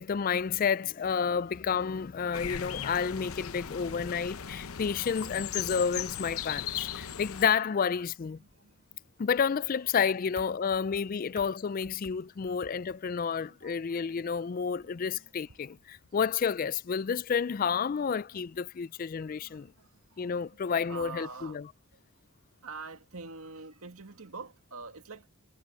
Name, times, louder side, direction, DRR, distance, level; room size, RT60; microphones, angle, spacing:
voice 1, 0.0-8.4 9.2-19.7 20.2-21.6, left 6 dB, 40° left, 0.3 m, -30 dB
sound 1, 2.3-7.5, left 9 dB, 80° left, 0.8 m, -37 dB
voice 2, 7.0-7.4 8.4-9.0 10.7-11.5 12.0-12.1 12.4-12.7 13.2-15.8 17.7-18.7 19.2-21.6 22.6-25.3, right 4 dB, 85° right, 2.0 m, -48 dB
head